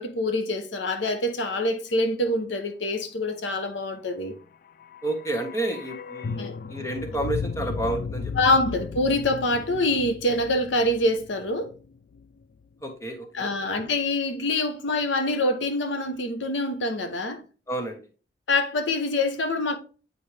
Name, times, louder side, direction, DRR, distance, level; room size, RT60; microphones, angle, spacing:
voice 1, 0.0-4.3 6.4-6.5 8.4-11.7 13.3-17.4 18.5-19.8, left 2 dB, 80° left, 0.9 m, -25 dB
sound 1, 4.5-12.7 12.9-13.0, left 5 dB, 50° left, 0.3 m, -36 dB
voice 2, 5.0-8.3 12.8-13.5 17.7-18.0, right 2 dB, 15° left, 1.3 m, -30 dB
8.7 x 4.2 x 3.3 m
head